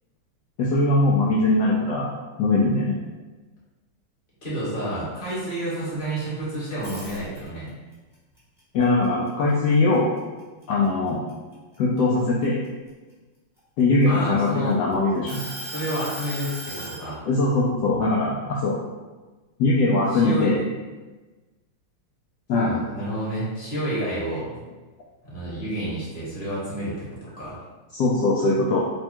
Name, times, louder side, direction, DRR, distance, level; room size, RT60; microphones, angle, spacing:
voice 1, 0.6-2.1 2.4-3.0 8.7-10.1 10.7-11.2 11.8-12.6 13.8-15.4 17.3-18.8 19.6-20.6 22.5-22.7 27.9-28.8, left 2 dB, 85° left, -5 dB, 0.9 m, -21 dB
voice 2, 4.4-7.7 14.0-14.8 15.7-17.3 20.1-20.5 22.5-24.6 25.2-27.6, right 1 dB, 30° left, -8 dB, 1.2 m, -30 dB
sound 1, 6.7-7.7 8.1-9.9 10.4-10.6 11.1-12.9 13.6-14.7 15.3-17.0, right 1 dB, ahead, 0.6 m, -37 dB
3.6 x 2.2 x 4.3 m, 1.2 s
omnidirectional pair, 2.3 m